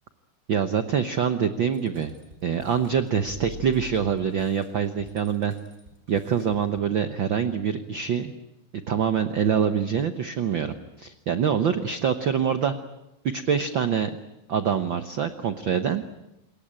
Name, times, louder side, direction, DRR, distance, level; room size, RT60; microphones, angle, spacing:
voice 1, 0.5-2.1 2.4-5.5 6.1-8.3 8.9-12.7 13.2-14.1 14.5-16.0, right 7 dB, 80° right, 9 dB, 1.0 m, -25 dB
sound 1, 1.7-6.8, equal, 15° right, 4.7 m, -45 dB
27.5 x 22.0 x 9.0 m, 0.91 s
omnidirectional pair, 3.8 m